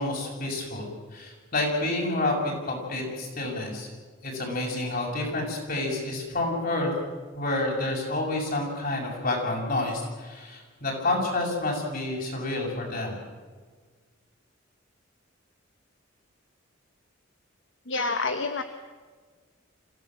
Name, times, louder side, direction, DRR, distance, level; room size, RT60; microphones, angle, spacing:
voice 1, 0.0-3.9 4.2-6.9 7.3-13.2, left 2 dB, 45° left, 0 dB, 7.1 m, -29 dB
voice 2, 17.9-18.6, left 3 dB, 65° left, 8 dB, 1.3 m, -27 dB
26.0 x 16.5 x 7.7 m, 1.5 s
head